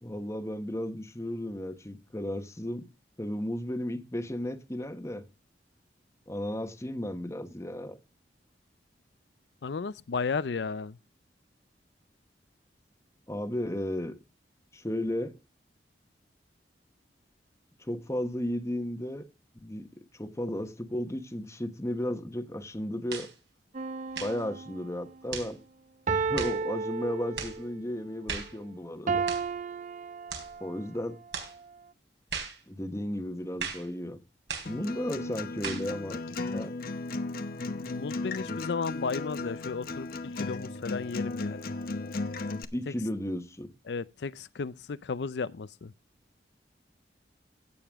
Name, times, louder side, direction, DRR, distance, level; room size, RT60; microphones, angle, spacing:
voice 1, 0.0-2.8 3.2-5.2 6.3-8.0 13.3-14.1 14.7-15.3 17.8-19.3 19.6-23.3 24.2-25.6 26.3-29.2 30.6-31.2 32.7-34.2 34.6-36.2 36.5-36.7 42.7-43.7, left 1 dB, 15° left, 1.1 m, -34 dB
voice 2, 9.6-11.0 37.6-41.7 42.9-43.0 43.9-45.9, left 5 dB, 75° left, 0.5 m, -34 dB
sound 1, 23.1-23.3 24.1-24.4 25.3-25.5 26.4-26.6 27.4-27.6 28.3-28.6 29.3-29.5 30.3-30.5 31.3-31.6 32.3-32.6 33.6-33.9 34.5-34.8 35.6-35.9, right 6 dB, 75° right, 4.0 m, -37 dB
sound 2, 23.7-25.1 26.1-27.7 29.1-30.8 31.4-31.6, right 5 dB, 45° right, 0.6 m, -33 dB
Acoustic guitar, 34.7-42.6, left 3 dB, 55° left, 0.8 m, -35 dB
16.5 x 6.9 x 3.5 m
head